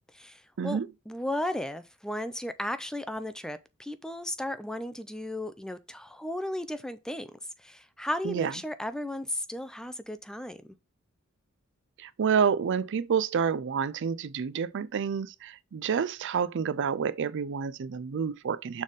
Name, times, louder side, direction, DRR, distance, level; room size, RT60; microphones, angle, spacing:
voice 1, 0.1-0.8 1.1-10.6, left 1 dB, 5° left, 0.4 m, -35 dB
voice 2, 12.0-18.8, right 6 dB, 60° right, 0.4 m, -29 dB
6.5 x 3.5 x 5.1 m
head